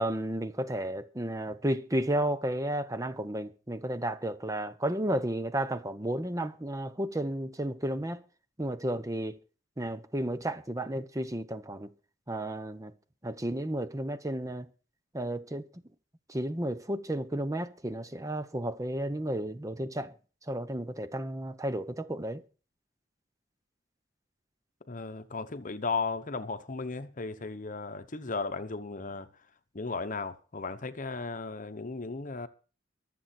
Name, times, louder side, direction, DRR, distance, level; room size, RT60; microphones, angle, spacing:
voice 1, 0.0-8.2 8.6-9.3 9.8-11.9 12.3-12.9 13.2-14.7 15.1-15.7 16.3-20.1 20.5-22.4, right 1 dB, 15° right, 1.0 m, -32 dB
voice 2, 24.9-29.3 29.7-32.5, left 4 dB, 45° left, 1.0 m, -35 dB
23.5 x 7.8 x 4.4 m
head